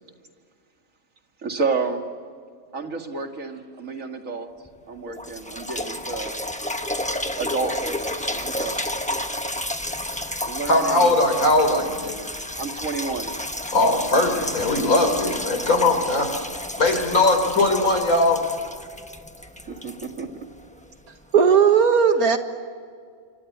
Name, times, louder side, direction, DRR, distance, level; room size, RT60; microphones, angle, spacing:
voice 1, 1.4-2.0 2.7-4.5 4.9-6.3 7.4-8.9 10.4-11.2 12.6-13.3 19.7-20.3, right 4 dB, 65° right, 4 dB, 2.6 m, -30 dB
sound 1, 4.7-4.8 5.2-20.9 21.5-21.6, left 1 dB, 5° left, 1.0 m, -31 dB
voice 2, 10.7-12.1 13.7-16.3 16.8-18.4, left 2 dB, 75° left, 7 dB, 4.2 m, -20 dB
voice 3, 21.3-22.4, right 6 dB, 85° right, 7 dB, 2.2 m, -16 dB
27.0 x 25.5 x 8.2 m, 2.1 s
omnidirectional pair, 1.5 m